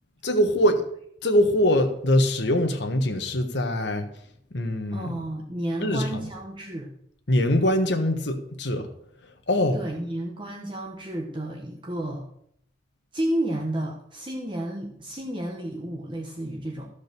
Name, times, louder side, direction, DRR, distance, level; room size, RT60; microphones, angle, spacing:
voice 1, 0.2-0.8 1.2-4.1 4.5-5.1 5.8-6.3 7.3-8.9 9.5-9.8, left 1 dB, 55° left, 1.3 m, -23 dB
voice 2, 4.9-6.9 9.7-12.2 13.1-16.9, right 1 dB, 25° right, 1.1 m, -31 dB
14.0 x 5.1 x 6.7 m
head